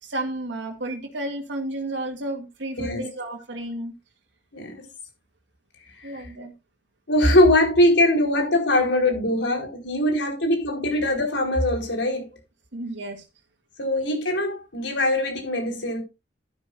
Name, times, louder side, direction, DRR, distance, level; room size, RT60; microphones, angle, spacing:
voice 1, 0.0-3.9 6.0-6.5 12.7-13.2, right 1 dB, 90° right, 2.1 m, -32 dB
voice 2, 2.8-3.1 4.5-4.8 6.0-6.2 7.1-12.4 13.8-16.0, left 1 dB, 85° left, 4.6 m, -22 dB
12.0 x 11.5 x 2.5 m
head